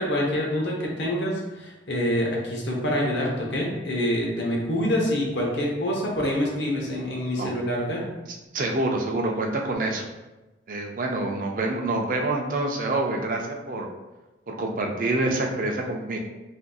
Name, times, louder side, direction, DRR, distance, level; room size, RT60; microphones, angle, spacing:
voice 1, 0.0-8.0, equal, 70° left, -1 dB, 0.8 m, -26 dB
voice 2, 8.5-10.1 10.7-13.9 14.5-16.2, right 2 dB, 45° right, 2 dB, 0.4 m, -26 dB
3.7 x 2.6 x 2.3 m, 1.1 s
head